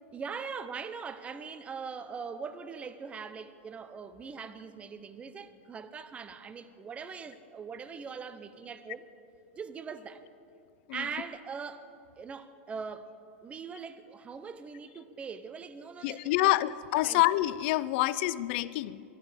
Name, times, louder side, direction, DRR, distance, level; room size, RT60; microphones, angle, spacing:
voice 1, 0.1-9.1 9.6-10.2 10.9-11.9 12.2-13.1 13.4-16.5 17.0-17.2, right 5 dB, 20° right, 12 dB, 0.8 m, -41 dB
voice 2, 16.0-19.0, left 16 dB, 55° left, 17 dB, 0.5 m, -27 dB
22.5 x 12.0 x 5.2 m, 2.6 s
supercardioid pair, 135°, 7 cm